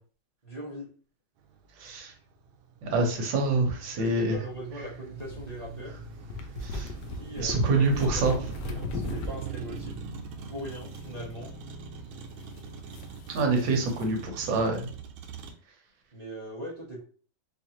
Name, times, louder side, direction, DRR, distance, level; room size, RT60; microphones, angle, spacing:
voice 1, 0.4-0.9 4.0-5.9 7.1-9.9 10.5-11.5 16.1-17.0, equal, 55° right, -5 dB, 0.4 m, -40 dB
Motor vehicle (road), 1.4-15.5, right 5 dB, 90° right, 1.5 m, -41 dB
voice 2, 1.8-2.1 2.8-4.4 6.6-6.9 7.4-8.4 13.3-14.9, right 3 dB, 70° right, 2 dB, 1.5 m, -26 dB
sound 1, 5.2-9.5 9.8-9.9 10.7-11.3 12.4-12.6 12.9-14.1, left 3 dB, 75° left, 1.0 m, -38 dB
4.6 x 2.5 x 2.8 m, 0.42 s
omnidirectional pair, 2.2 m